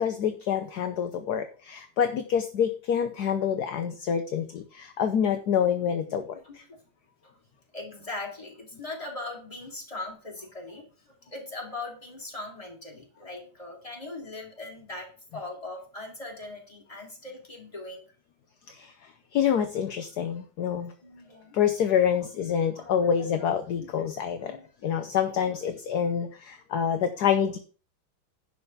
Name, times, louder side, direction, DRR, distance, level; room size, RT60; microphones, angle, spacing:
voice 1, 0.0-6.6 15.3-15.4 18.7-20.9 21.5-24.6 24.8-27.6, left 8 dB, 60° left, 8 dB, 1.2 m, -27 dB
voice 2, 6.1-6.8 7.2-7.3 7.7-10.9 11.2-18.1 21.0-21.6 22.4-23.4 23.8-24.1 24.4-24.7 25.9-26.1, left 2 dB, 15° left, 0 dB, 3.1 m, -40 dB
11.0 x 4.7 x 7.1 m, 0.39 s
omnidirectional pair, 2.2 m